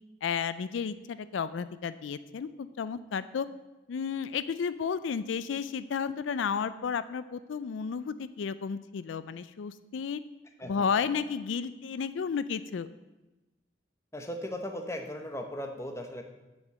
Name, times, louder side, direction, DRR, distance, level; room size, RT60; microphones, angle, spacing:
voice 1, 0.2-3.5 3.9-10.2 10.6-12.9, left 6 dB, 85° left, 15 dB, 0.4 m, -32 dB
voice 2, 14.1-16.2, left 1 dB, 15° left, 5 dB, 0.9 m, -37 dB
7.3 x 6.4 x 7.5 m, 1.1 s
head